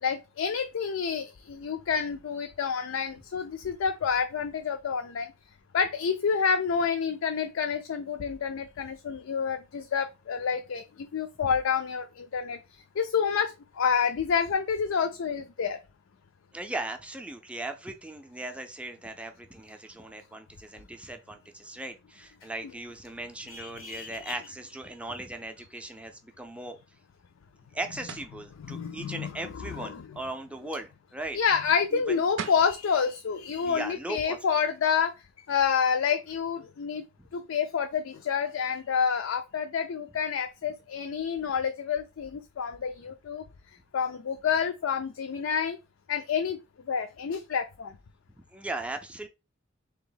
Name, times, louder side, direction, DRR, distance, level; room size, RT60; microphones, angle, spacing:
voice 1, 0.0-5.3 5.7-12.6 13.0-15.8 23.5-24.3 28.7-29.3 29.7-30.0 31.3-35.1 35.5-37.0 37.3-43.4 43.9-45.8 46.1-46.6 46.9-47.9, left 6 dB, 80° left, 0.4 m, -28 dB
voice 2, 16.5-26.8 27.7-31.4 31.9-32.2 33.6-34.6 37.2-37.3 48.5-49.3, right 2 dB, 5° right, 0.4 m, -38 dB
sound 1, 28.1-28.4 32.0-32.1 32.4-32.7, right 7 dB, 65° right, 0.5 m, -37 dB
3.4 x 2.9 x 3.8 m
head